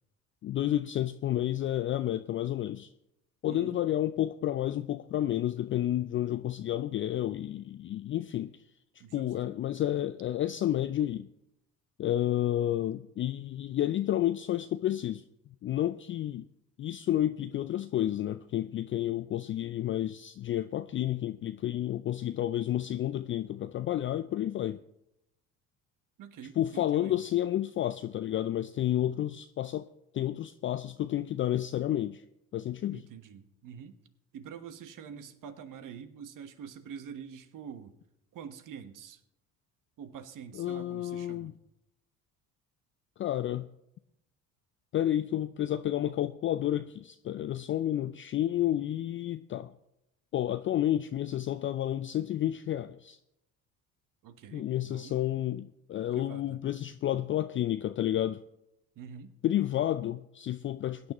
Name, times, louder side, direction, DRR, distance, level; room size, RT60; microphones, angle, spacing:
voice 1, 0.4-2.9 3.4-8.5 9.1-11.3 12.0-15.2 15.6-16.5 16.8-24.8 26.6-29.9 30.1-32.2 32.5-33.0 40.5-41.5 43.2-43.7 44.9-49.7 50.3-53.2 54.5-58.4 59.4-61.1, left 12 dB, 30° left, 0.4 m, -30 dB
voice 2, 3.5-3.8 9.0-9.5 26.2-27.2 32.9-34.0 34.3-37.9 38.3-39.2 40.0-41.5 54.2-55.2 56.1-56.6 59.0-59.4, right 7 dB, 50° right, 1.3 m, -46 dB
22.0 x 9.5 x 3.0 m
hypercardioid pair, 55°, 41 cm